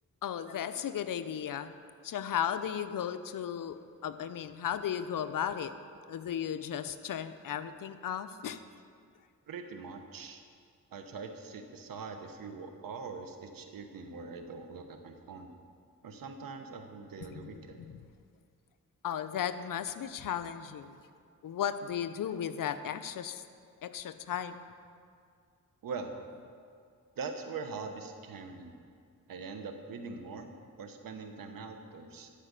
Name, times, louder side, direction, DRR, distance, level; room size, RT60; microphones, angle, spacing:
voice 1, 0.2-1.7 2.0-5.7 6.1-8.6 17.3-17.6 17.9-18.0 19.0-21.0 21.4-23.4 23.8-24.7, left 9 dB, 75° left, 11 dB, 0.7 m, -35 dB
voice 2, 9.5-10.4 10.9-15.5 16.0-17.8 25.8-26.2 27.2-28.8 29.3-30.5 30.8-32.3, right 4 dB, 85° right, 6 dB, 1.1 m, -42 dB
13.0 x 5.1 x 8.1 m, 2.3 s
cardioid pair, 70°, 33 cm